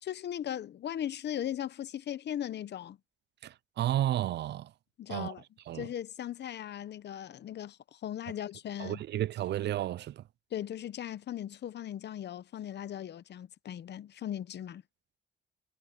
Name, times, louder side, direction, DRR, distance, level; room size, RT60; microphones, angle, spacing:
voice 1, 0.0-3.0 5.0-5.4 5.7-9.0 10.5-14.8, left 10 dB, 60° left, 0.9 m, -38 dB
voice 2, 3.4-4.7 5.1-5.3 5.7-5.9 8.8-10.2, right 12 dB, 60° right, 0.4 m, -32 dB
cardioid pair, 90°, 20 cm